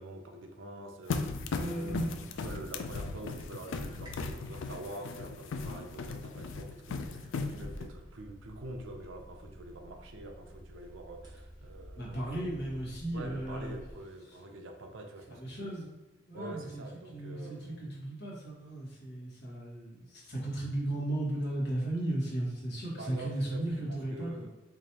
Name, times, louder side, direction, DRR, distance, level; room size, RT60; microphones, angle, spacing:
voice 1, 0.0-12.4 13.1-15.8 16.3-17.9 22.9-24.5, right 1 dB, 75° right, 4 dB, 0.6 m, -46 dB
sound 1, 1.1-7.9, left 4 dB, 75° left, 0.4 m, -37 dB
voice 2, 1.5-2.1 12.0-13.7 15.3-15.9 16.2-16.8 17.1-24.5, right 1 dB, 60° left, -5 dB, 1.3 m, -35 dB
sound 2, 3.8-13.9, equal, 20° right, 0.8 m, -52 dB
4.8 x 2.5 x 2.9 m, 1.1 s
head